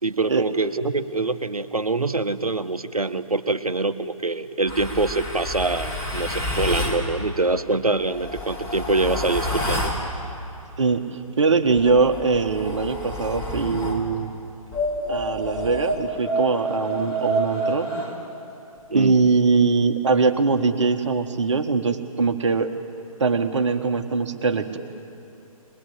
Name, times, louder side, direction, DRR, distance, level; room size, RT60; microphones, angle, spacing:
voice 1, 0.0-9.9 18.9-19.2, right 3 dB, 80° right, 11 dB, 1.1 m, -24 dB
sound 1, 4.7-7.0 8.0-10.0 11.7-14.0 14.7-18.1, equal, 15° left, 3.0 m, -28 dB
voice 2, 10.8-14.3 15.1-17.9 18.9-22.7 23.2-24.8, right 4 dB, 55° right, 7 dB, 1.6 m, -22 dB
21.5 x 21.5 x 8.8 m, 2.9 s
figure-of-eight pair, 135°, 19 cm